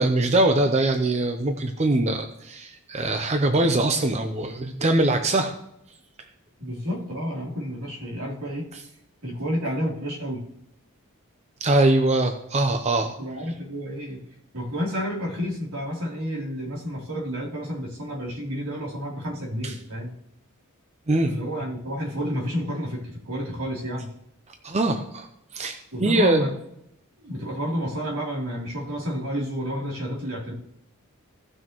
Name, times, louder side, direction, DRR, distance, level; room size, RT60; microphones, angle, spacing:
voice 1, 0.0-5.5 11.6-13.1 19.6-19.7 21.1-21.3 24.6-25.3 25.5-26.4, right 2 dB, 30° right, 6 dB, 0.7 m, -22 dB
voice 2, 6.6-8.7 9.2-10.4 13.2-14.2 14.5-20.1 21.2-24.1 25.9-26.5 27.2-30.5, equal, 80° right, -3 dB, 3.3 m, -30 dB
17.0 x 6.3 x 3.0 m, 0.77 s
head